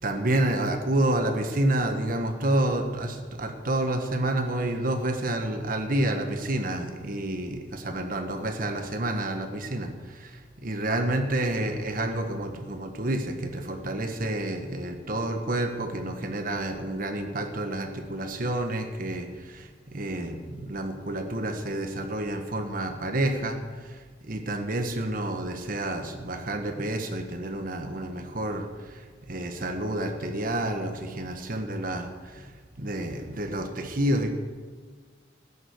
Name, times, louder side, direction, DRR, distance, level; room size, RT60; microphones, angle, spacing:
voice 1, 0.0-23.6 23.8-32.5 32.8-34.3, right 1 dB, 50° right, 5 dB, 1.3 m, -29 dB
14.0 x 9.9 x 6.5 m, 1.5 s
head